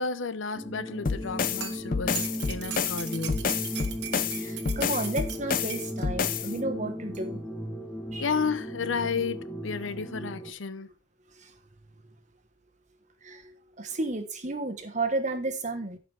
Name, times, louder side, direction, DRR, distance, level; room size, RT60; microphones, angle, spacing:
voice 1, 0.0-3.5 8.2-10.9, left 5 dB, 80° left, 0.7 m, -32 dB
sound 1, 0.5-10.5, equal, 10° left, 1.1 m, -37 dB
sound 2, 1.0-6.5, left 6 dB, 45° left, 0.5 m, -29 dB
sound 3, 1.2-6.1 7.1-7.2, right 8 dB, 60° right, 1.4 m, -39 dB
voice 2, 4.3-7.4 8.1-8.3 11.3-11.5 13.2-16.0, right 2 dB, 40° right, 1.3 m, -32 dB
15.0 x 5.1 x 3.4 m
head